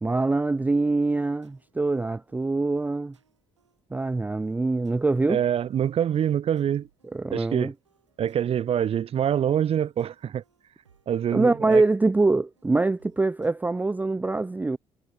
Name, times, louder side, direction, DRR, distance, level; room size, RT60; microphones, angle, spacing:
voice 1, 0.0-3.2 3.9-5.4 7.1-7.7 11.3-14.8, right 3 dB, 10° right, 0.5 m, -24 dB
sound 1, 0.6-13.5, right 6 dB, 85° right, 6.5 m, -64 dB
voice 2, 5.3-6.9 7.3-7.7 8.2-10.4 11.1-11.8, right 9 dB, 40° right, 0.9 m, -25 dB
figure-of-eight pair, 50°, 15 cm